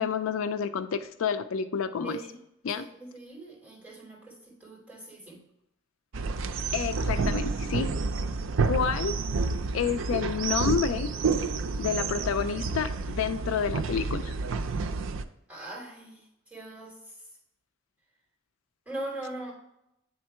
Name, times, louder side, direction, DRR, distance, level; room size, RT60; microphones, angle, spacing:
voice 1, 0.0-2.2 2.6-2.9 6.7-7.9 8.6-9.2 9.7-11.1 11.8-14.3, left 6 dB, 90° left, 11 dB, 0.4 m, -29 dB
voice 2, 2.0-2.4 2.7-5.4 15.5-17.0 18.9-19.5, right 2 dB, 5° right, -5 dB, 2.7 m, -41 dB
sound 1, 6.1-15.2, right 4 dB, 75° right, 0.4 m, -29 dB
8.7 x 3.6 x 4.3 m, 0.82 s
head